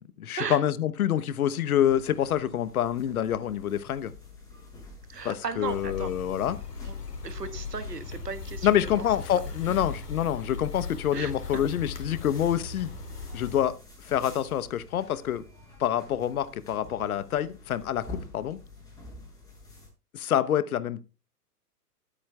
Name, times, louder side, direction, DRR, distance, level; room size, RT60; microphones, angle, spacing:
voice 1, 0.3-4.1 5.2-6.6 8.6-12.9 13.3-13.8 14.0-15.4 15.8-18.6 20.1-21.0, left 10 dB, 65° left, 1.0 m, -27 dB
sound 1, 1.8-19.9, left 2 dB, 5° left, 6.9 m, -49 dB
voice 2, 5.1-6.1 6.8-7.0 7.2-9.0 11.1-11.6, right 5 dB, 85° right, 1.5 m, -36 dB
sound 2, 5.6-13.6, left 5 dB, 90° left, 2.6 m, -38 dB
20.5 x 8.6 x 2.3 m
hypercardioid pair, 120°, 47 cm